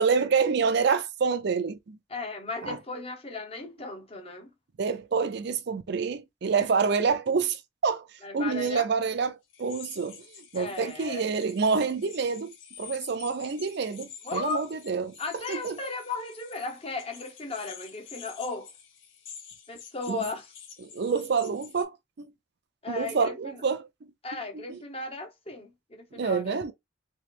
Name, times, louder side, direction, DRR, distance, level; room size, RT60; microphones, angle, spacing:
voice 1, 0.0-2.0 2.6-2.8 4.8-8.1 8.3-10.2 10.5-15.1 15.5-15.7 20.1-20.2 20.8-22.3 22.9-23.9 24.7-24.8 26.2-26.7, right 5 dB, 55° right, 0.4 m, -27 dB
voice 2, 2.1-4.5 8.2-8.9 10.5-11.3 14.2-14.7 15.2-18.7 19.7-20.5 22.8-23.6 24.2-26.6, left 3 dB, 30° left, 0.9 m, -36 dB
sound 1, 9.5-21.8, left 7 dB, 75° left, 1.1 m, -48 dB
3.1 x 2.9 x 3.3 m
head